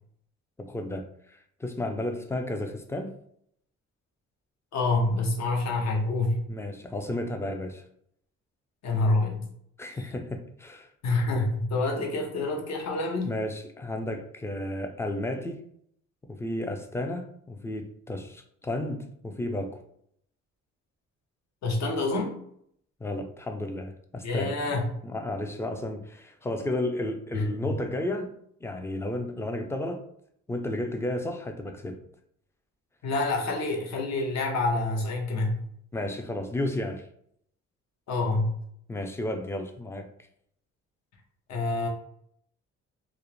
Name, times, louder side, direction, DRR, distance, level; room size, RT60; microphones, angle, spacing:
voice 1, 0.6-3.2 6.5-7.8 9.8-10.9 13.2-15.6 16.3-19.8 23.0-24.6 25.0-28.3 28.6-30.0 30.5-32.0 35.9-37.0 38.9-40.1, left 1 dB, 10° left, 5 dB, 0.3 m, -33 dB
voice 2, 4.7-6.4 8.8-9.5 11.0-13.4 21.6-22.4 24.2-24.9 27.3-27.7 33.0-35.6 38.1-38.6 41.5-41.9, left 2 dB, 60° left, 1 dB, 0.8 m, -27 dB
2.4 x 2.0 x 3.0 m, 0.69 s
cardioid pair, 90°, 30 cm